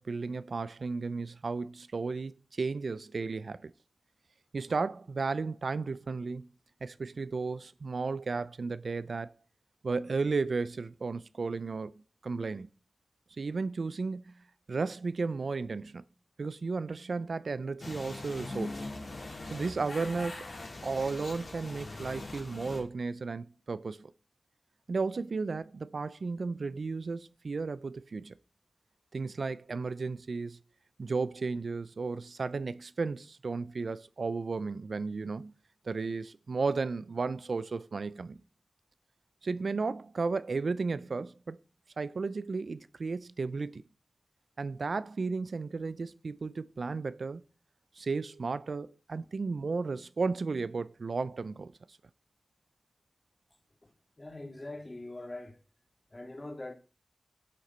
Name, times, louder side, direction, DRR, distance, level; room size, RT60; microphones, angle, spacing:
voice 1, 0.0-3.7 4.5-6.5 6.8-9.3 9.8-11.9 12.2-12.7 13.4-14.3 14.7-16.0 16.4-18.9 19.5-20.5 20.8-24.1 24.9-28.4 29.1-30.6 31.0-35.5 35.8-38.4 39.4-41.6 42.0-43.8 44.6-47.4 48.0-51.7, right 4 dB, 70° right, 0.4 m, -34 dB
sound 1, 17.8-22.8, left 2 dB, 70° left, 3.8 m, -41 dB
voice 2, 54.2-55.6 56.1-56.7, left 2 dB, 30° left, 2.0 m, -42 dB
11.0 x 6.5 x 4.3 m
wide cardioid pair, 85°, 0 cm